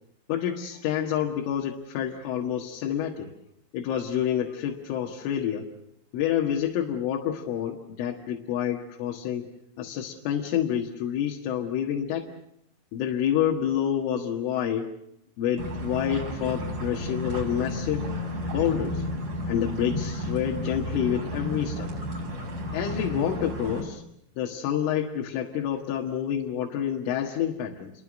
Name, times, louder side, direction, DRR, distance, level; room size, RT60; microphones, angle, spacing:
voice 1, 0.3-3.3 3.7-5.7 6.1-9.5 9.8-12.3 12.9-14.9 15.4-18.1 18.5-19.0 19.5-21.9 22.7-24.0 24.4-27.9, left 9 dB, 75° left, 0 dB, 4.2 m, -28 dB
sound 1, 15.6-23.8, left 1 dB, 35° right, 6.3 m, -32 dB
29.5 x 23.5 x 6.4 m, 0.74 s
omnidirectional pair, 6.0 m